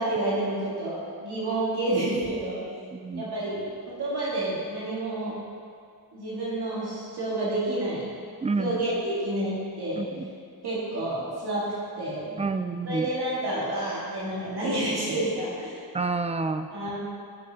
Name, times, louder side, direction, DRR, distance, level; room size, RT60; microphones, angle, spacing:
voice 1, 0.0-2.6 3.1-3.6 4.0-5.4 6.1-8.1 8.6-10.0 10.6-11.7 12.0-12.3 12.8-15.8 16.7-17.0, right 1 dB, 85° right, -8 dB, 2.1 m, -29 dB
voice 2, 2.9-3.2 8.4-8.8 10.0-10.3 12.4-13.1 15.9-16.7, right 3 dB, 20° right, 9 dB, 0.3 m, -28 dB
13.0 x 5.3 x 2.9 m, 2.2 s
wide cardioid pair, 100°, 38 cm